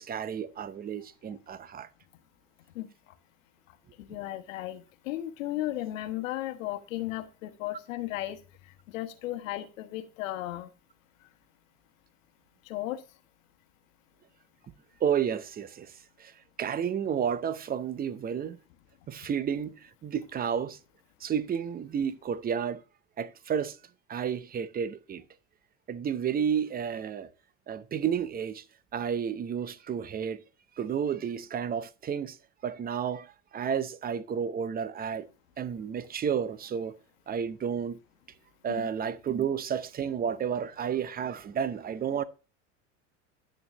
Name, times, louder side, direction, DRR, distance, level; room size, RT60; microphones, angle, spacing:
voice 1, 0.0-1.9 15.0-16.3 16.6-18.6 19.1-20.8 21.2-22.8 23.2-23.8 24.1-25.2 25.9-27.3 27.7-28.6 28.9-30.4 30.8-32.4 32.6-35.3 35.6-37.0 37.3-38.0 38.6-42.2, right 8 dB, 25° right, 0.7 m, -31 dB
voice 2, 4.0-8.4 8.9-10.7 11.2-11.3 12.7-13.0 38.7-38.9, left 14 dB, 85° left, 1.3 m, -35 dB
10.5 x 7.0 x 2.9 m
supercardioid pair, 110°, 38 cm